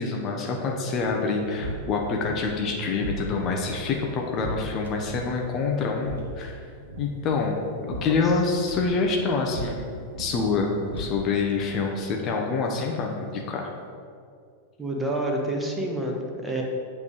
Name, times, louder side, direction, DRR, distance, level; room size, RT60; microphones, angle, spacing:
voice 1, 0.0-6.6 7.0-9.9 10.2-13.7, left 4 dB, 35° left, 0 dB, 0.9 m, -26 dB
sound 1, 1.0-11.6, right 1 dB, 65° right, 1.0 m, -38 dB
voice 2, 14.8-16.6, right 1 dB, 10° right, 0 dB, 1.1 m, -28 dB
8.4 x 3.6 x 6.4 m, 2.3 s
figure-of-eight pair, 90°, 0 cm